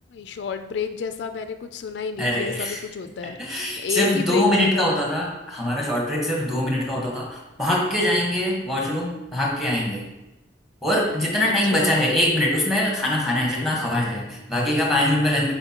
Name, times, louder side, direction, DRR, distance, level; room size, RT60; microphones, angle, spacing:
voice 1, 0.1-3.4 3.8-5.0 11.5-11.9, left 5 dB, 60° left, 8 dB, 0.3 m, -30 dB
voice 2, 2.2-2.8 3.4-10.0 10.8-15.5, left 1 dB, ahead, -2 dB, 1.1 m, -23 dB
7.8 x 4.3 x 2.9 m, 1.0 s
head